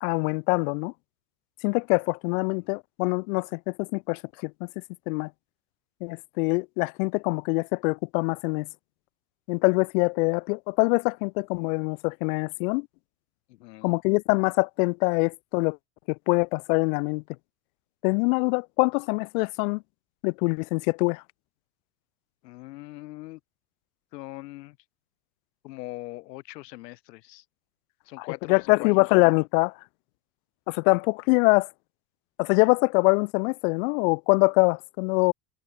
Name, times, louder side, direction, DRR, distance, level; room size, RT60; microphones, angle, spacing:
voice 1, 0.0-0.9 1.6-4.5 5.1-5.3 6.0-8.7 9.5-12.9 13.8-15.8 16.3-17.2 18.0-19.8 20.2-21.2 28.2-29.7 30.7-31.7 32.4-35.3, left 30 dB, 60° left, 0.6 m, -24 dB
voice 2, 13.6-13.9 22.4-23.4 24.1-24.8 25.6-27.4 28.1-29.0, left 19 dB, 75° left, 3.3 m, -41 dB
supercardioid pair, 135°, 49 cm